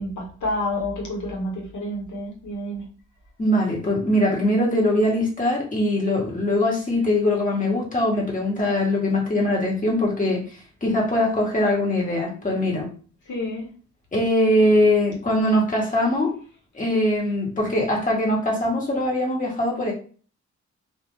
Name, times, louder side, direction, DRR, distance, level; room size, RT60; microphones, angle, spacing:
voice 1, 0.0-2.8 13.3-13.7, left 1 dB, 85° left, -1 dB, 1.0 m, -29 dB
voice 2, 3.4-10.4 10.8-12.9 14.1-16.3 16.7-19.9, left 1 dB, 25° left, -3 dB, 1.1 m, -22 dB
2.4 x 2.3 x 3.0 m, 0.41 s
cardioid pair, 70°, 30 cm